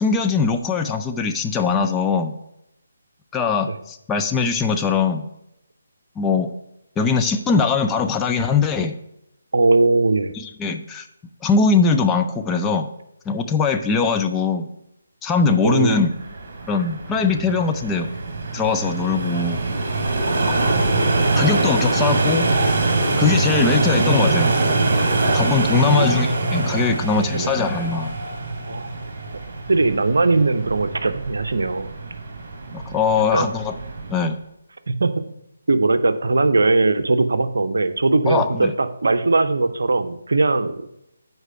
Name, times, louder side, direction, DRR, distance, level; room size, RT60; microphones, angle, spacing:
voice 1, 0.0-2.3 3.3-5.3 6.2-6.5 7.0-9.0 10.3-11.1 11.4-12.9 13.3-14.7 15.2-16.1 16.7-18.1 18.5-19.6 21.4-22.5 23.2-24.5 25.3-28.1 32.7-33.7 34.1-34.4 38.3-38.7, left 5 dB, 10° left, 4 dB, 0.4 m, -21 dB
voice 2, 9.5-10.3 15.6-16.0 20.3-21.3 25.9-26.3 27.1-27.5 28.7-29.1 29.7-31.9 33.3-33.5 34.9-35.2 35.7-40.7, right 3 dB, 65° right, 10 dB, 0.6 m, -20 dB
sound 1, 16.0-34.3, right 2 dB, 40° right, 2.2 m, -23 dB
8.0 x 4.6 x 5.6 m, 0.83 s
figure-of-eight pair, 145°, 0 cm